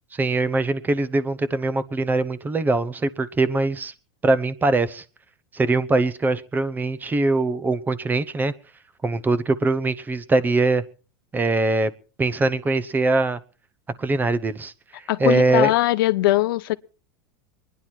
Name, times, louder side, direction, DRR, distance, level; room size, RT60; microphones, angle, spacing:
voice 1, 0.1-3.9 4.2-5.0 5.5-8.5 9.0-10.8 11.3-11.9 12.2-13.4 14.0-14.7 15.2-15.7, right 2 dB, 15° right, 0.8 m, -22 dB
voice 2, 15.1-16.8, left 17 dB, 75° left, 0.7 m, -20 dB
23.5 x 10.5 x 4.5 m
supercardioid pair, 130°, 12 cm